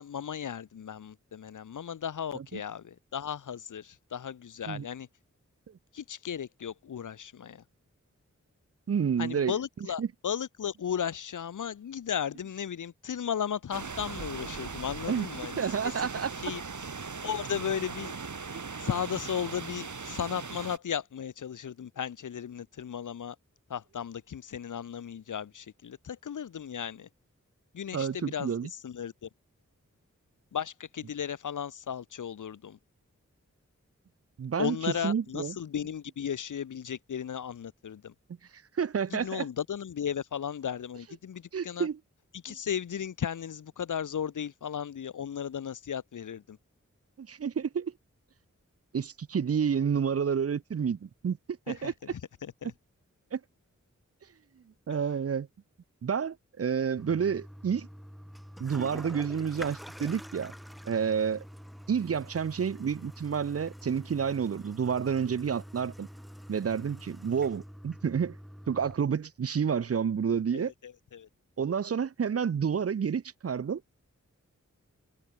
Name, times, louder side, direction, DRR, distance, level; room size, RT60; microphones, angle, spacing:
voice 1, 0.0-5.1 5.9-7.6 9.2-15.6 16.0-16.1 16.4-16.6 17.2-18.1 18.8-23.4 23.7-27.1 27.7-29.3 30.5-32.8 34.6-38.1 39.1-41.9 42.3-46.6 51.7-52.7 70.5-71.3, left 8 dB, 85° left, 0.7 m, -35 dB
voice 2, 8.9-9.6 10.0-10.1 15.1-15.3 15.6-16.3 18.5-18.6 27.9-28.7 34.4-34.8 35.0-35.6 38.8-39.5 41.5-42.0 42.5-42.6 47.2-47.9 48.9-51.4 51.7-51.9 53.3-53.4 54.9-55.5 56.0-57.9 58.6-60.5 60.9-61.4 61.9-66.1 66.5-68.4 68.7-70.7 71.6-73.8, right 7 dB, 50° right, 0.6 m, -29 dB
sound 1, 13.7-20.8, right 5 dB, 70° right, 3.7 m, -39 dB
Toilet flush, 57.0-68.9, equal, ahead, 3.9 m, -46 dB
wide cardioid pair, 50°, 30 cm